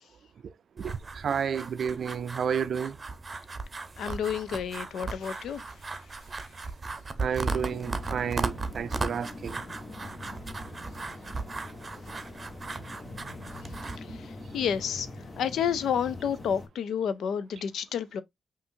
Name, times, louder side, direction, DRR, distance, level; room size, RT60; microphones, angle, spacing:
voice 1, 0.4-3.0 7.2-9.6, right 7 dB, 65° right, 0.4 m, -31 dB
sound 1, 0.8-14.0, right 3 dB, 35° right, 0.7 m, -37 dB
voice 2, 4.0-5.6 14.5-15.1 15.4-18.2, left 8 dB, 75° left, 0.4 m, -30 dB
sound 2, 7.5-16.7, left 2 dB, 40° left, 1.3 m, -43 dB
5.4 x 2.5 x 2.6 m
supercardioid pair, 55°, 0 cm